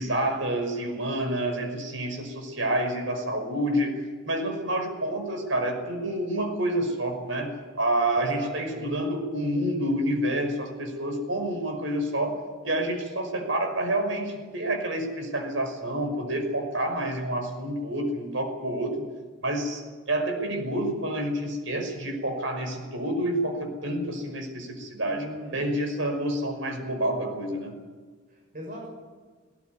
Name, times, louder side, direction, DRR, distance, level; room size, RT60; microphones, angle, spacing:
voice 1, 0.0-7.5 7.8-19.1 19.4-25.3 25.5-27.8, right 1 dB, 85° right, 5 dB, 5.8 m, -28 dB
voice 2, 8.2-8.9 25.1-25.6 28.3-28.9, equal, 45° right, 0 dB, 6.2 m, -40 dB
19.0 x 19.0 x 9.7 m, 1.4 s
head